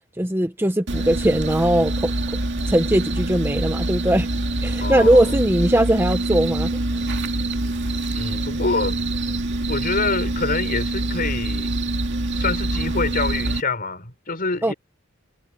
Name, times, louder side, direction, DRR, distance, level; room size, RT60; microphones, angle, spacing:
voice 1, 0.2-2.1 2.7-4.3 4.6-6.8 14.6-14.7, right 1 dB, 10° right, 1.1 m, -20 dB
sound 1, 0.9-13.6, right 2 dB, 55° right, 2.4 m, -25 dB
voice 2, 4.8-5.4 8.1-9.0 9.7-11.8 12.4-14.7, left 3 dB, 45° left, 4.7 m, -26 dB
head